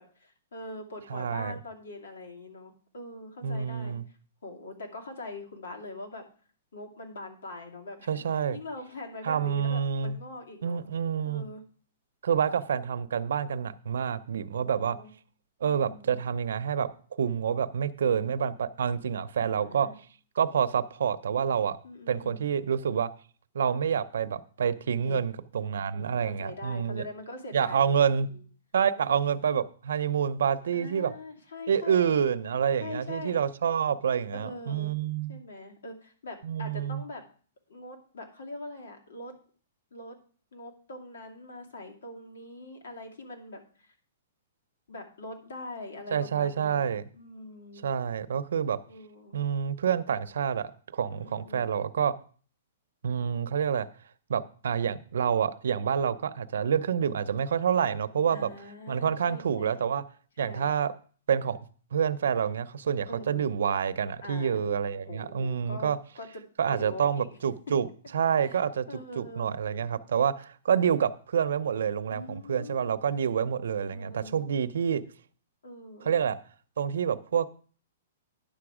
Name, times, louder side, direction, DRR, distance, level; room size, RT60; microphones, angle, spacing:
voice 1, 0.0-4.0 4.4-6.3 6.7-10.8 11.2-11.6 14.6-15.1 15.6-16.2 19.4-19.9 21.8-22.5 25.0-25.2 25.9-28.5 28.9-29.2 30.7-32.2 32.8-33.4 34.4-34.9 35.3-37.2 37.7-39.3 39.9-40.2 40.5-43.9 44.9-47.8 48.9-49.4 51.1-51.7 58.3-59.7 60.4-60.7 63.1-63.5 64.2-64.6 65.0-66.4 66.7-67.3 68.4-68.6 68.9-69.5 72.1-72.9 73.9-74.6 75.6-76.2, left 2 dB, 85° left, 2 dB, 2.5 m, -43 dB
voice 2, 1.1-1.5 3.4-4.0 8.1-8.6 9.2-10.2 10.6-11.5 12.2-15.0 15.6-16.9 17.2-19.9 20.4-21.8 22.1-23.1 23.5-27.1 27.5-28.3 28.7-31.1 31.7-35.4 36.4-37.0 46.1-47.0 47.8-48.8 49.3-52.1 53.0-53.9 54.3-58.5 58.9-60.0 60.4-60.9 61.3-61.6 61.9-66.0 66.6-67.9 68.1-68.9 69.2-75.0 76.0-76.4 76.8-77.5, right 7 dB, 80° right, 14 dB, 0.7 m, -27 dB
10.0 x 7.0 x 5.0 m, 0.43 s
hypercardioid pair, 165°, 0 cm